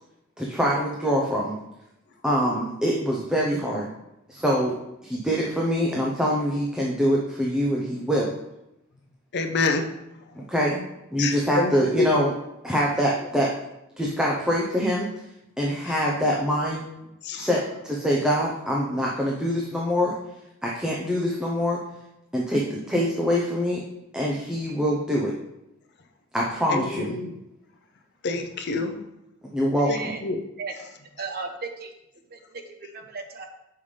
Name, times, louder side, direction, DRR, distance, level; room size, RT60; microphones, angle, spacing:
voice 1, 0.4-1.5 2.2-3.9 4.3-4.8 5.0-8.3 10.5-10.8 11.1-12.3 12.6-13.5 14.0-15.1 15.6-16.9 17.3-20.1 20.6-21.8 22.3-23.8 24.1-25.3 26.3-27.1 29.5-30.1, equal, 5° right, -4 dB, 0.7 m, -24 dB
voice 2, 9.3-9.9 11.2-12.1 15.8-15.9 17.2-17.5 26.7-27.3 28.2-29.0 29.9-30.4, left 3 dB, 55° left, 5 dB, 0.6 m, -27 dB
voice 3, 29.8-30.2 30.6-30.7 31.2-31.9 32.3-33.5, right 4 dB, 50° right, 4 dB, 0.8 m, -35 dB
6.8 x 5.5 x 3.3 m, 0.88 s
head